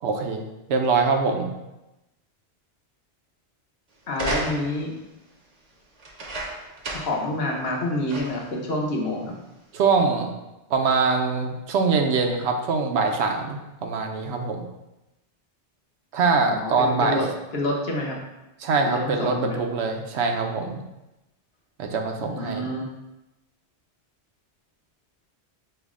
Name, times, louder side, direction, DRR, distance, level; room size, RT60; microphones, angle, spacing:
voice 1, 0.0-1.5 9.7-10.3 10.7-14.7 16.1-17.2 18.6-20.8 21.8-22.7, right 4 dB, 75° right, 3 dB, 0.8 m, -23 dB
voice 2, 4.1-4.9 6.9-9.3 16.4-17.3 17.5-18.2 18.8-19.6 22.2-22.9, left 1 dB, 65° left, -1 dB, 0.9 m, -28 dB
sound 1, 4.1-4.9 6.0-7.3 7.6-7.7 8.1-8.5 9.3-9.4, right 2 dB, 40° right, 0.6 m, -33 dB
5.6 x 2.0 x 3.5 m, 0.97 s
omnidirectional pair, 1.2 m